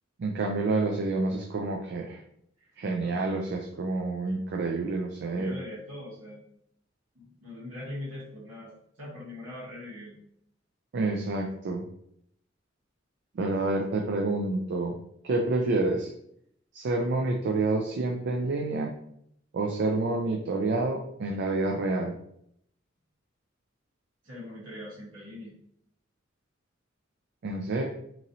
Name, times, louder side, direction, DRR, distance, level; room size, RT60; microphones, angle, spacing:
voice 1, 0.2-2.2 2.8-5.5 10.9-11.9 13.4-14.9 15.2-16.1 16.7-19.0 19.5-22.1 27.4-27.8, right 2 dB, 60° right, 1 dB, 0.4 m, -28 dB
voice 2, 3.0-3.4 5.3-6.4 7.1-10.2 24.2-25.5, left 1 dB, 85° right, -9 dB, 1.2 m, -42 dB
3.0 x 2.7 x 2.6 m, 0.71 s
head